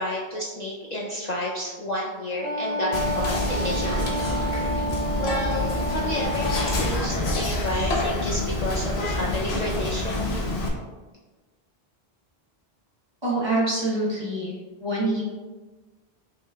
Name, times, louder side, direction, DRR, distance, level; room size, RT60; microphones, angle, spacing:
voice 1, 0.0-4.2 5.2-10.4, left 1 dB, 50° left, -3 dB, 0.6 m, -31 dB
Wind instrument woodwind instrument, 2.4-7.1, right 1 dB, 50° right, 1.6 m, -30 dB
Whispering, 2.9-10.7, left 2 dB, 80° left, 1.0 m, -27 dB
voice 2, 13.2-14.5 14.8-15.2, right 2 dB, 25° right, -5 dB, 1.1 m, -25 dB
6.0 x 3.6 x 2.3 m, 1.3 s
omnidirectional pair, 1.1 m